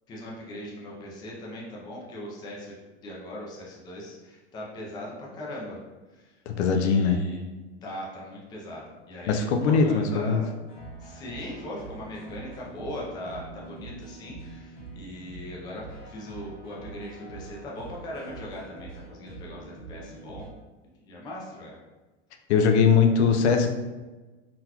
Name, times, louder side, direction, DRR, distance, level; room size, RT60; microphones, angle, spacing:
voice 1, 0.1-2.7 3.0-5.8 6.1-6.3 6.7-7.4 7.8-10.5 11.0-20.5 21.0-21.8, left 1 dB, 10° left, -4 dB, 0.4 m, -39 dB
voice 2, 6.5-7.2 9.3-10.4 22.5-23.7, left 5 dB, 70° left, 5 dB, 0.5 m, -21 dB
sound 1, 10.7-20.5, right 3 dB, 45° left, 1.5 m, -44 dB
3.9 x 2.3 x 2.8 m, 1.2 s
supercardioid pair, 145°, 35 cm